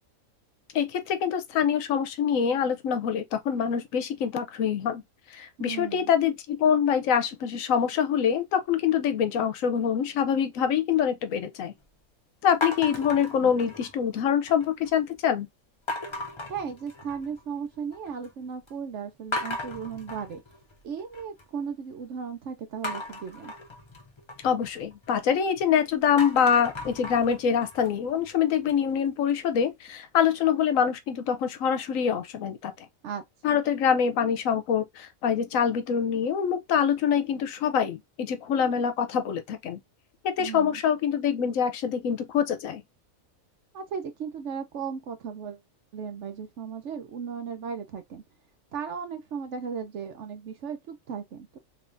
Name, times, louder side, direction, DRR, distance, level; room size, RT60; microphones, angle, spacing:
voice 1, 0.7-5.0 5.3-11.7 12.4-15.5 24.4-32.7 33.4-39.8 40.2-42.8, left 8 dB, 70° left, 1.0 m, -25 dB
voice 2, 5.6-6.1 13.4-13.5 16.5-20.4 20.8-23.5 33.0-33.6 40.4-40.8 43.7-45.6 45.9-48.2 48.7-51.6, right 6 dB, 60° right, 0.9 m, -36 dB
sound 1, 12.6-14.1 14.5-15.0 15.9-17.4 17.7-18.3 18.7-18.8 19.3-21.4 22.8-25.6 26.0-28.9, left 2 dB, 45° left, 0.3 m, -36 dB
3.4 x 3.0 x 2.5 m
omnidirectional pair, 1.5 m